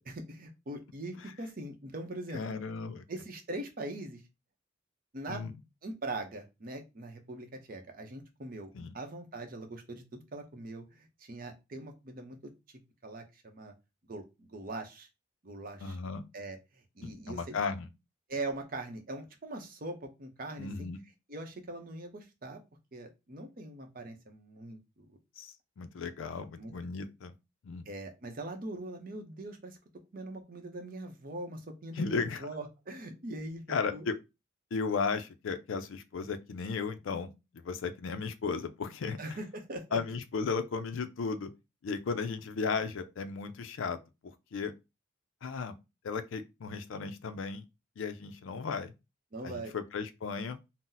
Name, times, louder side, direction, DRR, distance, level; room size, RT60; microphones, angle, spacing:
voice 1, 0.1-2.4 3.1-4.2 5.1-5.4 5.8-8.7 8.9-12.5 13.0-13.7 14.1-15.1 15.4-16.0 16.3-17.6 18.3-20.9 21.3-22.6 22.9-25.1 26.5-26.7 27.9-29.8 30.1-33.6 33.9-34.1 39.2-40.0 49.3-49.8, right 2 dB, 45° right, 0.6 m, -41 dB
voice 2, 2.3-3.0 5.3-5.5 8.7-8.9 15.8-16.2 17.0-17.9 20.6-21.0 25.4-27.3 27.6-27.8 32.0-32.5 33.7-34.2 34.7-39.2 39.9-41.5 41.8-44.0 44.5-44.7 45.4-45.8 46.0-47.6 48.0-48.9 49.4-50.6, left 5 dB, 75° left, 0.4 m, -35 dB
2.7 x 2.0 x 3.7 m
head